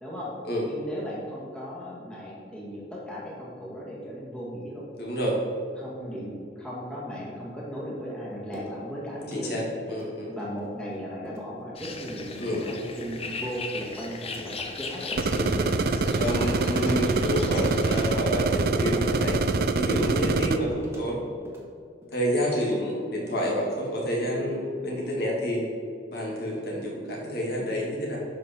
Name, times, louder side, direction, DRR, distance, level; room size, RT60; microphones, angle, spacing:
voice 1, 0.0-0.3 0.6-4.8 5.8-9.6 10.2-15.1, equal, 5° left, -6 dB, 1.8 m, -37 dB
voice 2, 5.0-5.4 9.3-9.6 9.9-10.3 12.4-12.7 14.3-14.5 15.3-15.7 16.2-19.4 19.8-21.3 22.1-25.7 26.1-28.2, equal, 60° left, -3 dB, 2.3 m, -28 dB
sound 1, 8.5-8.8 9.2-9.6 9.9-10.1 10.6-10.7 11.2-11.5 11.9-12.0 12.5-12.8 13.2-13.4 13.8-14.0 14.5-14.8 15.1-15.3 15.8-16.1 16.4-16.7 17.0-17.4 17.7-17.9 18.3-18.4 19.0-19.3 19.6-19.8 20.2-20.4 20.8-21.1 21.4-21.7 22.0-22.4 22.7-23.0 23.3-23.5, equal, 15° right, 1.6 m, -42 dB
sound 2, 11.8-18.2, left 4 dB, 35° left, 0.7 m, -39 dB
sound 3, 15.2-20.6, right 3 dB, 55° right, 0.5 m, -25 dB
11.5 x 5.4 x 4.5 m, 2.3 s
head